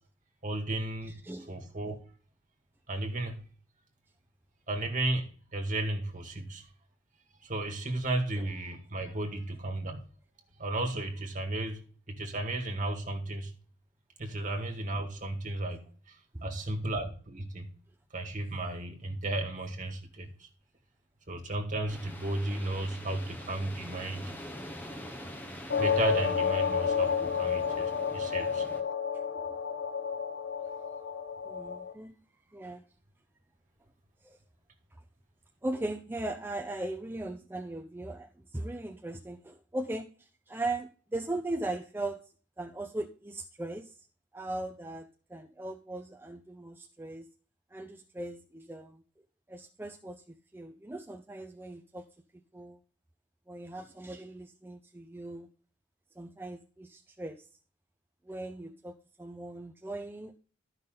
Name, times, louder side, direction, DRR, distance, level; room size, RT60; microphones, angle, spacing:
voice 1, 0.4-1.2 1.5-2.0 2.9-3.4 4.7-6.7 7.4-10.0 10.6-13.5 14.2-15.8 16.4-17.7 18.1-20.5 21.3-24.3 25.8-28.7, right 2 dB, 45° right, 1.9 m, -34 dB
voice 2, 1.0-1.5 8.4-8.5 16.3-16.4 23.1-23.2 29.1-29.8 31.4-32.1 32.5-32.8 34.2-34.4 35.6-42.3 42.6-43.9 44.3-47.3 47.7-49.0 49.5-52.1 52.5-52.8 53.5-55.5 56.2-57.5 58.3-60.4, right 2 dB, 10° right, 0.5 m, -39 dB
sound 1, 21.9-28.8, equal, 10° left, 1.0 m, -45 dB
sound 2, 25.7-31.9, left 6 dB, 60° left, 1.0 m, -30 dB
12.5 x 5.7 x 3.9 m
head